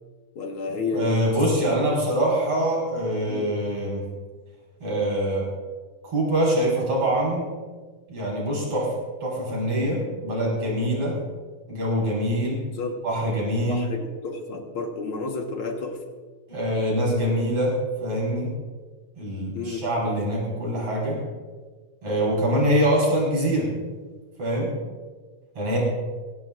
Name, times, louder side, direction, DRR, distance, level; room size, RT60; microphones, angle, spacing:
voice 1, 0.4-1.4 1.7-2.0 3.3-3.5 12.7-13.0 13.7-16.0 19.5-19.9, left 3 dB, 55° left, 3 dB, 1.9 m, -31 dB
voice 2, 0.9-4.0 4.8-5.5 6.0-7.5 8.1-8.9 9.2-11.2 11.7-12.6 13.0-13.9 16.5-18.5 19.2-21.2 22.0-23.7 24.4-24.7 25.6-25.8, equal, 50° right, -3 dB, 6.1 m, -24 dB
22.0 x 17.0 x 2.5 m, 1.4 s
omnidirectional pair, 3.4 m